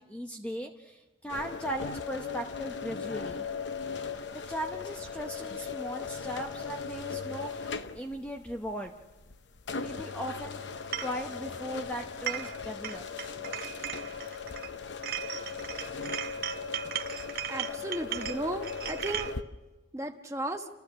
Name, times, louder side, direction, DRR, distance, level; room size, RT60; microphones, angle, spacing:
voice 1, 0.0-3.5 4.3-8.9 9.8-13.0, equal, 5° left, 3 dB, 0.7 m, -38 dB
sound 1, 1.3-19.4, left 5 dB, 65° left, 0.8 m, -38 dB
sound 2, 10.9-11.2 12.0-12.6 12.8-14.7 15.0-19.3, right 10 dB, 50° right, 0.8 m, -37 dB
voice 2, 17.5-19.3 19.9-20.7, right 1 dB, 15° right, 4 dB, 1.2 m, -35 dB
29.5 x 14.0 x 6.2 m, 1.1 s
head